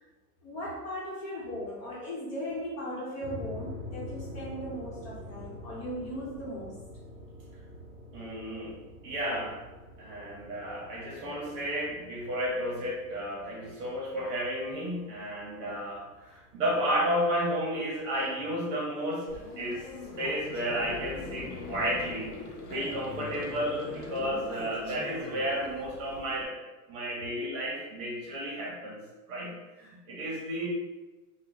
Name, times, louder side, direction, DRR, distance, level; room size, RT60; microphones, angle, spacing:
voice 1, 0.4-6.8, equal, 55° left, -6 dB, 1.1 m, -37 dB
sound 1, 3.2-18.4, left 1 dB, 10° right, 0.4 m, -47 dB
voice 2, 8.1-8.8 9.0-9.6 10.0-19.3 19.6-19.9 20.2-22.3 22.7-26.5 26.9-29.0 29.3-30.7, equal, 30° right, -3 dB, 0.7 m, -32 dB
Male speech man speaking, 18.1-21.1 22.7-25.7, left 1 dB, 10° left, 0.9 m, -46 dB
sound 2, 19.3-26.4, left 3 dB, 75° left, 0.8 m, -43 dB
3.1 x 2.2 x 3.8 m, 1.2 s
supercardioid pair, 150°, 47 cm